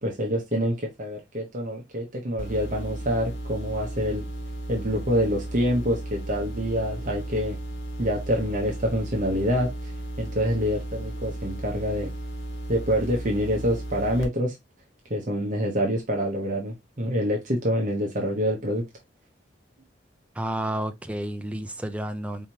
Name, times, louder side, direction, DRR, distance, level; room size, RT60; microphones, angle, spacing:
voice 1, 0.0-4.2 4.7-7.6 8.0-9.7 10.2-12.1 12.7-14.6 15.1-18.8, equal, 40° right, 1.0 m, -26 dB
sound 1, 2.4-14.2, right 1 dB, 85° left, 1.2 m, -35 dB
voice 2, 20.4-22.5, right 1 dB, 5° right, 0.5 m, -31 dB
4.5 x 3.5 x 2.8 m
head